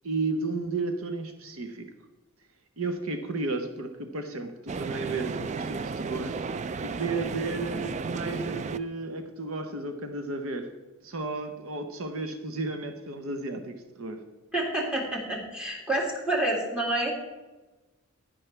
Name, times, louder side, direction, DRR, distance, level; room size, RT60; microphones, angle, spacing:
voice 1, 0.0-1.9 2.8-6.4 6.8-10.7 11.0-14.2, right 3 dB, 70° right, 6 dB, 0.9 m, -33 dB
sound 1, 4.7-8.8, right 4 dB, 35° right, 0.3 m, -33 dB
voice 2, 14.5-17.1, right 1 dB, 5° right, -2 dB, 2.2 m, -28 dB
10.5 x 10.5 x 3.3 m, 1.1 s
head